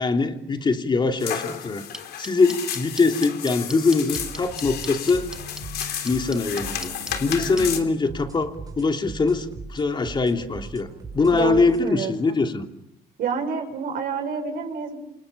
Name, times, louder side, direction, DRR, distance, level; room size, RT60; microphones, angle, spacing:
voice 1, 0.0-1.9 2.2-5.3 6.0-6.9 7.2-12.6, left 4 dB, 30° left, 5 dB, 3.0 m, -22 dB
sound 1, 1.2-7.8, left 9 dB, 70° left, 3.5 m, -33 dB
sound 2, 1.9-7.6, right 1 dB, 5° right, 1.6 m, -36 dB
sound 3, 4.1-11.9, right 4 dB, 25° right, 7.0 m, -39 dB
voice 2, 11.3-12.4 13.2-15.0, right 6 dB, 60° right, 3 dB, 6.4 m, -29 dB
28.5 x 28.0 x 7.4 m, 0.81 s
cardioid pair, 110°, 17 cm